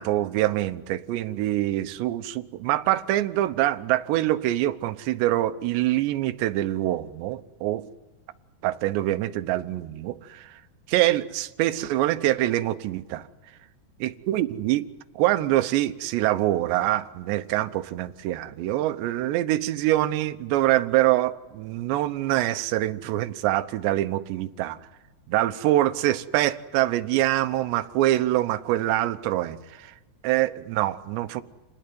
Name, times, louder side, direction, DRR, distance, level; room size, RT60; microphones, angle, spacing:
voice 1, 0.0-7.8 8.6-10.5 10.9-13.2 14.0-14.9 15.2-24.8 25.3-29.9 30.2-31.4, right 14 dB, 75° right, 10 dB, 3.1 m, -25 dB
28.5 x 19.0 x 9.4 m, 1.2 s
omnidirectional pair, 5.2 m